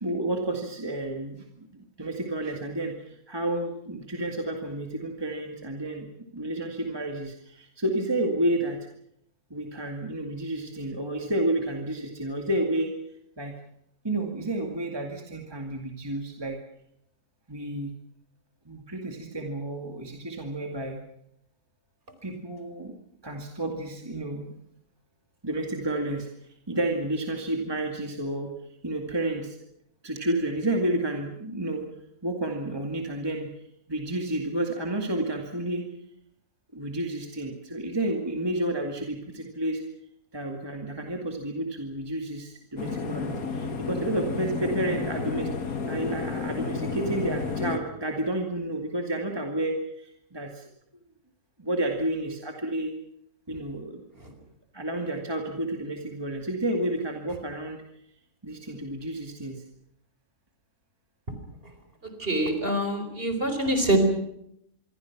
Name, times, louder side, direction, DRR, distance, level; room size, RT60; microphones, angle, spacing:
voice 1, 0.0-6.1 6.3-8.8 9.5-12.9 13.4-13.5 14.0-16.6 17.5-17.9 18.7-21.0 22.2-22.9 23.2-24.5 25.4-26.3 26.7-28.5 28.8-29.6 30.0-31.9 32.2-33.5 33.9-35.8 36.7-39.8 40.3-50.7 51.6-52.9 53.5-54.0 54.7-57.8 58.4-59.6, right 1 dB, 15° right, 2 dB, 2.2 m, -30 dB
sound 1, 42.8-47.8, left 4 dB, 85° left, 2.2 m, -31 dB
voice 2, 62.2-64.0, right 1 dB, 40° right, 7 dB, 4.7 m, -25 dB
26.0 x 23.0 x 6.0 m, 0.73 s
omnidirectional pair, 1.5 m